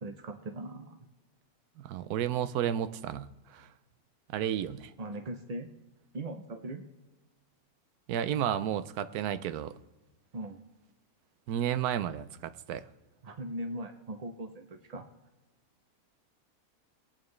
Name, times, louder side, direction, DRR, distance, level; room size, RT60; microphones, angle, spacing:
voice 1, 0.0-1.0 5.0-5.7 6.1-6.8 10.3-10.6 13.2-15.1, right 1 dB, 50° right, 6 dB, 0.4 m, -39 dB
voice 2, 1.8-3.7 4.3-4.9 8.1-9.7 11.5-12.9, right 10 dB, 85° right, 14 dB, 1.1 m, -32 dB
22.5 x 9.0 x 3.2 m, 1.1 s
omnidirectional pair, 1.6 m